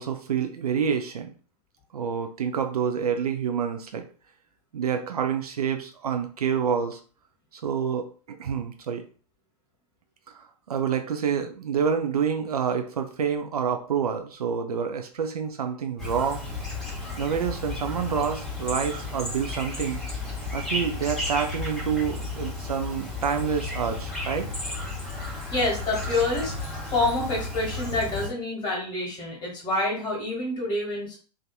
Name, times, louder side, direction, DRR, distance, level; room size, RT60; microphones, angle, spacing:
voice 1, 0.0-1.3 1.9-4.0 4.7-7.0 7.5-9.0 10.4-16.4 17.2-20.0 20.5-24.5, right 7 dB, 65° right, 6 dB, 0.5 m, -28 dB
Chirp tweet, 16.0-28.3, left 2 dB, ahead, 0.7 m, -33 dB
voice 2, 25.2-31.2, left 2 dB, 20° left, -2 dB, 1.3 m, -28 dB
2.6 x 2.5 x 2.3 m, 0.39 s
figure-of-eight pair, 105°, 21 cm